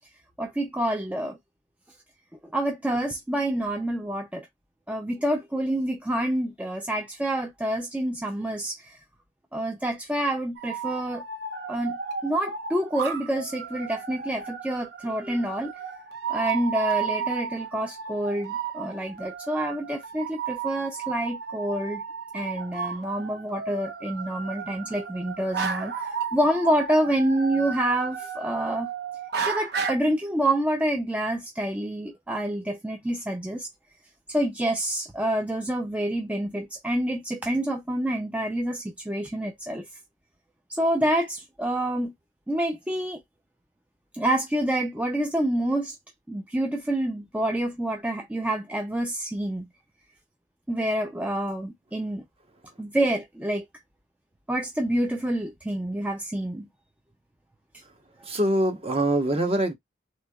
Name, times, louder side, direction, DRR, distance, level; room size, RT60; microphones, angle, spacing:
voice 1, 0.4-1.4 2.5-4.5 4.9-9.0 9.5-11.2 11.7-12.0 12.2-15.7 16.3-22.0 22.3-28.9 29.5-33.7 34.3-40.0 40.7-42.1 42.5-43.2 44.1-46.0 46.3-49.7 50.7-52.2 52.8-53.7 54.5-56.7, right 1 dB, 5° right, 0.4 m, -27 dB
sound 1, 10.6-29.9, right 6 dB, 60° right, 0.8 m, -33 dB
voice 2, 58.3-59.7, right 1 dB, 30° right, 0.9 m, -23 dB
3.5 x 3.1 x 2.2 m
head